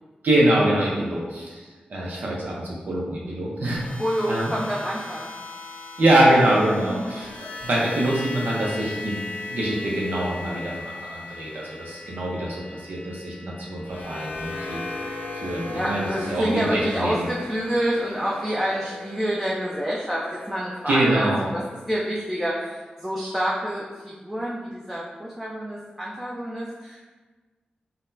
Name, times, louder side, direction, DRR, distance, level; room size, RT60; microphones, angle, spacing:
voice 1, 0.2-3.9 4.3-4.5 6.0-14.8 15.3-17.3 20.9-21.5, right 1 dB, 75° right, -4 dB, 0.6 m, -24 dB
sound 1, 3.6-21.8, left 3 dB, 90° left, 0.4 m, -38 dB
voice 2, 4.0-5.3 6.8-7.1 15.7-21.3 21.9-27.0, equal, 10° right, -5 dB, 0.4 m, -28 dB
3.9 x 2.1 x 2.6 m, 1.3 s
wide cardioid pair, 75°, 3 cm